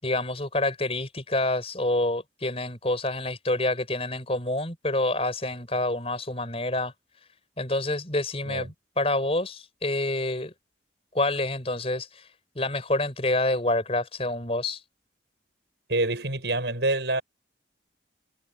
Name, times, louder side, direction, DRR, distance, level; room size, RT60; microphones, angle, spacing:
voice 1, 0.0-6.9 7.6-10.5 11.1-14.8, left 2 dB, 35° left, 5.1 m, -27 dB
voice 2, 15.9-17.2, right 2 dB, 70° right, 6.0 m, -26 dB
head